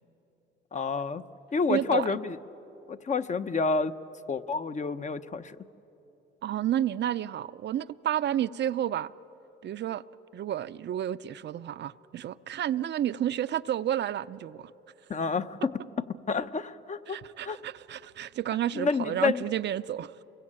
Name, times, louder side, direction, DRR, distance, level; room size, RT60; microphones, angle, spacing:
voice 1, 0.7-1.2 1.5-2.4 2.9-3.9 4.3-5.6 15.1-15.7 16.3-17.2 17.4-17.6 18.7-19.4, left 4 dB, 35° left, 0.9 m, -29 dB
voice 2, 1.7-2.2 6.4-9.1 9.6-10.0 10.3-14.7 17.1-20.2, right 11 dB, 60° right, 0.6 m, -31 dB
28.5 x 23.0 x 8.8 m
cardioid pair, 90°, 20 cm